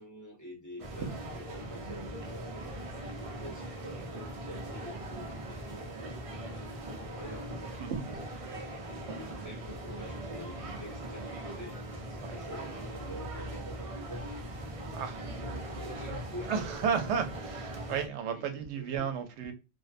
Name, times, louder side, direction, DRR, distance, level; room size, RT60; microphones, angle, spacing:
voice 1, 0.0-7.8 9.3-11.8 12.1-14.3 15.0-16.6 18.3-19.2, equal, 20° left, 0.8 m, -47 dB
sound 1, 0.8-18.1, right 1 dB, 55° right, 0.4 m, -40 dB
voice 2, 14.9-15.4 16.5-19.5, right 7 dB, 75° right, 0.8 m, -33 dB
2.5 x 2.1 x 2.4 m
omnidirectional pair, 1.2 m